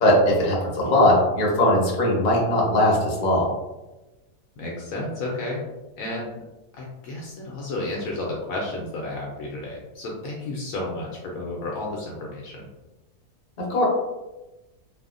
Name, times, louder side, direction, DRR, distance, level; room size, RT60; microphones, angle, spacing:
voice 1, 0.0-3.5 13.6-13.8, left 1 dB, 40° left, -4 dB, 0.7 m, -20 dB
voice 2, 4.6-5.6 6.0-6.4 6.8-12.7, left 2 dB, 70° left, -3 dB, 0.9 m, -32 dB
3.3 x 2.0 x 2.4 m, 1.0 s
omnidirectional pair, 1.7 m